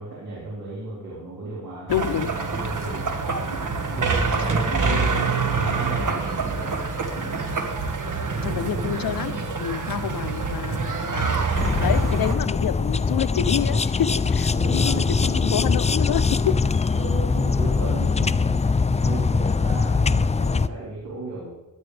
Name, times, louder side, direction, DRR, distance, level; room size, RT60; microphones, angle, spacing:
voice 1, 0.0-3.1 3.9-6.8 14.5-15.5 16.9-21.5, right 2 dB, 80° right, -7 dB, 4.4 m, -35 dB
voice 2, 1.9-2.3 8.4-16.6, left 10 dB, 90° left, 13 dB, 0.7 m, -28 dB
sound 1, 1.9-12.3, right 4 dB, 65° right, 1.6 m, -26 dB
sound 2, 11.5-20.7, left 4 dB, 20° left, 0.4 m, -22 dB
16.5 x 11.5 x 3.3 m, 1.1 s
cardioid pair, 70°, 34 cm